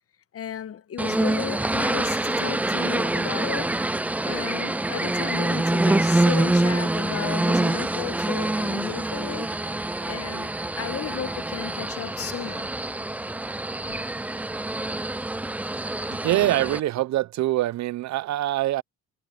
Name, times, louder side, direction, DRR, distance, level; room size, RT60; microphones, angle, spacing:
voice 1, 0.3-3.9 4.2-9.8 10.1-12.7, left 9 dB, 50° left, 1.1 m, -34 dB
sound 1, 1.0-16.8, right 2 dB, 5° right, 0.3 m, -26 dB
sound 2, 5.9-8.8 9.3-10.6 10.9-11.0, right 12 dB, 85° right, 2.1 m, -53 dB
voice 2, 16.2-18.8, right 15 dB, 65° right, 0.5 m, -24 dB
cardioid pair, 90°, 30 cm